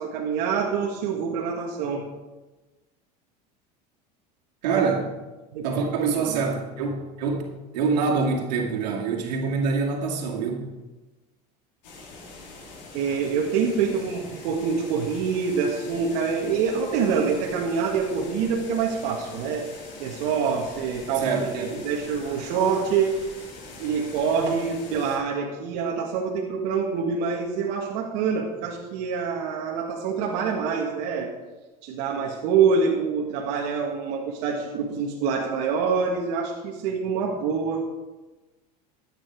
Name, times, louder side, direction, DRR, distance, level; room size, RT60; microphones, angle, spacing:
voice 1, 0.0-2.1 5.5-6.4 12.9-19.7 20.0-21.3 21.6-23.5 23.8-31.3 31.8-37.8, right 6 dB, 70° right, -1 dB, 1.8 m, -26 dB
voice 2, 4.6-5.0 5.6-7.4 7.7-10.7 21.2-21.8, right 4 dB, 90° right, 0 dB, 2.4 m, -25 dB
sound 1, 11.8-25.2, left 3 dB, 90° left, 3.4 m, -43 dB
13.0 x 9.3 x 4.7 m, 1.2 s
supercardioid pair, 110°, 21 cm